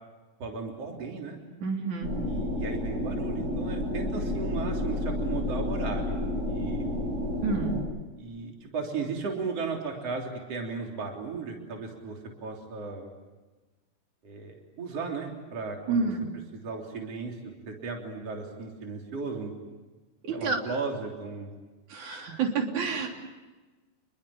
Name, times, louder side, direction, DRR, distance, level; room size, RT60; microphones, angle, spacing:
voice 1, 0.4-1.4 2.2-6.2 6.5-7.0 8.2-13.1 14.2-16.1 16.6-17.4 17.7-19.5 20.3-21.5, right 4 dB, 50° right, 1 dB, 4.5 m, -35 dB
voice 2, 1.6-2.1 7.4-7.8 15.9-16.3 20.2-20.6 21.9-23.1, right 4 dB, 65° right, 2 dB, 4.7 m, -28 dB
sound 1, 2.0-7.8, left 1 dB, 20° right, 7.1 m, -30 dB
29.5 x 22.0 x 8.6 m, 1.2 s
omnidirectional pair, 3.6 m